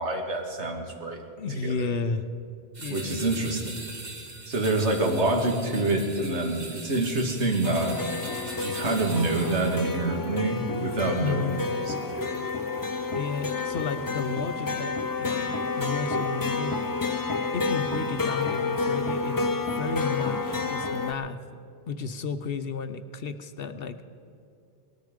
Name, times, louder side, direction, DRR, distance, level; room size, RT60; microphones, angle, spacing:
voice 1, 0.0-1.2 1.6-1.9 2.9-3.7 4.5-7.9 8.6-12.4, right 2 dB, 75° right, 3 dB, 1.9 m, -27 dB
voice 2, 1.4-2.3 2.8-3.7 11.2-11.6 13.1-16.8 17.5-21.4 21.9-24.0, left 5 dB, 60° left, 10 dB, 0.9 m, -33 dB
sound 1, 2.7-10.1, right 3 dB, 40° right, 1.4 m, -41 dB
sound 2, 7.6-21.1, left 3 dB, 25° left, 0.5 m, -30 dB
19.0 x 13.5 x 5.1 m, 2.5 s
omnidirectional pair, 1.2 m